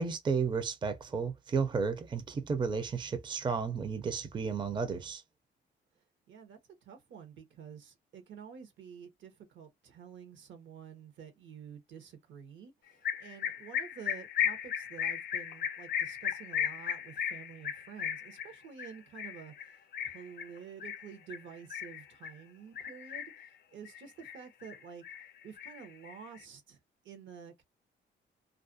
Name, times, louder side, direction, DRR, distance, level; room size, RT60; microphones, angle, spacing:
voice 1, 0.0-5.2, right 5 dB, 25° right, 0.5 m, -33 dB
voice 2, 6.3-19.5 20.1-23.2 23.7-25.0 25.4-26.8 27.0-27.6, right 7 dB, 70° right, 0.8 m, -49 dB
sound 1, 13.0-22.4 22.8-23.5 23.8-24.8 25.0-26.4, left 9 dB, 55° left, 0.4 m, -36 dB
2.4 x 2.1 x 2.4 m
cardioid pair, 90°, 20 cm